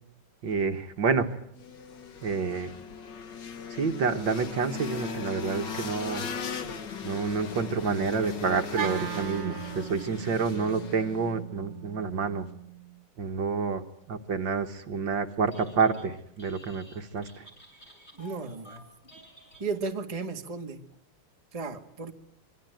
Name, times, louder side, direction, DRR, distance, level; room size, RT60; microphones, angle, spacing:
voice 1, 0.4-1.3 2.2-2.7 3.7-6.3 7.0-12.5 13.2-13.8 14.1-17.4, right 5 dB, 60° right, 7 dB, 2.0 m, -28 dB
sound 1, 1.5-11.4, left 5 dB, 55° left, 2.2 m, -39 dB
Wind instrument woodwind instrument, 8.7-13.0, right 10 dB, 85° right, 2.3 m, -38 dB
Telephone, 15.3-16.1 16.4-20.1, right 1 dB, 30° left, 7.4 m, -53 dB
voice 2, 18.2-18.8 19.6-20.8 21.5-22.1, right 4 dB, 20° right, 5 dB, 1.6 m, -34 dB
25.5 x 23.5 x 9.1 m, 0.73 s
omnidirectional pair, 2.3 m